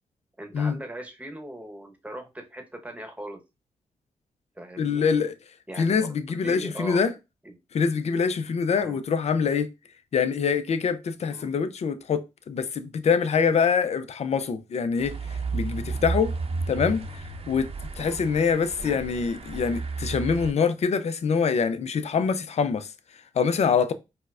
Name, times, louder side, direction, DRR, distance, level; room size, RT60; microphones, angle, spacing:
voice 1, 0.4-3.4 4.6-5.1 5.7-6.1 6.4-7.0 7.4-7.6 8.8-9.0 11.3-11.5 18.0-18.2 18.8-19.0, right 1 dB, 10° right, 1.0 m, -39 dB
voice 2, 4.8-5.3 5.8-7.1 7.7-9.7 10.1-15.1 15.5-16.3 16.7-17.1 17.5-17.7 18.0-22.9 23.4-23.9, left 6 dB, 50° left, 0.5 m, -24 dB
sound 1, 15.0-20.5, right 3 dB, 45° right, 0.7 m, -32 dB
4.4 x 2.1 x 2.4 m
supercardioid pair, 50°, 14 cm